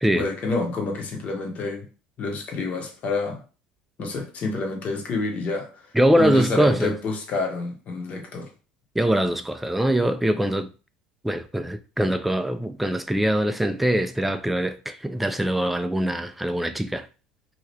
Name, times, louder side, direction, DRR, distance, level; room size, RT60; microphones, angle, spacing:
voice 1, 0.2-1.8 2.2-3.4 4.0-5.9 6.2-8.5, left 3 dB, 45° left, 1.0 m, -28 dB
voice 2, 5.9-6.9 9.0-10.7 11.2-17.1, right 1 dB, 5° right, 0.3 m, -23 dB
2.8 x 2.4 x 3.2 m
supercardioid pair, 100°, 3 cm